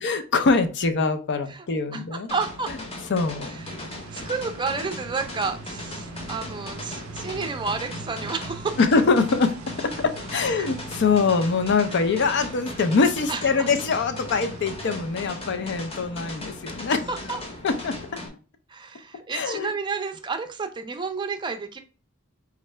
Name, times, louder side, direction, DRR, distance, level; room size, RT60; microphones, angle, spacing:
voice 1, 0.0-2.3 3.1-3.6 8.8-9.5 9.8-17.0 17.6-17.9 19.3-19.7, left 4 dB, 55° left, 9 dB, 0.5 m, -23 dB
voice 2, 1.9-2.7 3.5-8.8 10.3-10.7 13.3-13.7 17.1-17.4 18.7-21.8, right 4 dB, 20° right, 7 dB, 0.5 m, -31 dB
sound 1, 2.3-18.3, left 2 dB, 30° left, 0.8 m, -38 dB
sound 2, 3.6-15.3, right 5 dB, 80° right, 0.4 m, -43 dB
3.7 x 3.2 x 3.2 m, 0.36 s
head